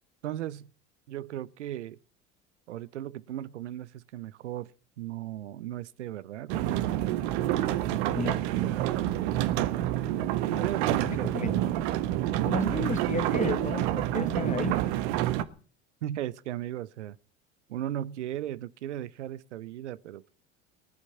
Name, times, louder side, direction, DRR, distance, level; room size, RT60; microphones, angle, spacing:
voice 1, 0.2-0.7 1.1-2.0 2.7-4.7 5.0-7.3 7.8-9.1 10.5-11.7 16.0-17.2 17.7-20.3, right 12 dB, 90° right, 0.8 m, -37 dB
sound 1, 6.5-15.4, right 13 dB, 70° right, 1.3 m, -28 dB
voice 2, 11.0-11.6 12.4-14.8, left 4 dB, 20° left, 1.5 m, -33 dB
19.0 x 11.0 x 5.7 m
hypercardioid pair, 80°, 34 cm